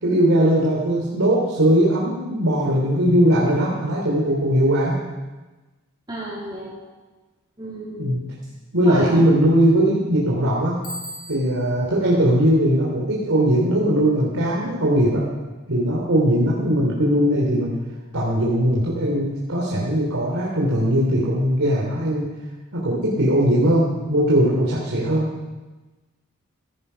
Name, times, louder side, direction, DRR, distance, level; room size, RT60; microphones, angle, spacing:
voice 1, 0.0-5.0 8.0-8.2 8.7-10.9 11.3-15.2 15.7-17.7 18.1-22.3 22.7-25.3, equal, 70° right, -5 dB, 3.1 m, -19 dB
voice 2, 6.1-6.7 7.6-8.1 8.8-9.2, right 1 dB, 20° right, -5 dB, 2.8 m, -32 dB
Bicycle bell, 10.8-11.8, equal, 40° left, 5.2 m, -37 dB
16.0 x 15.0 x 5.7 m, 1.2 s
head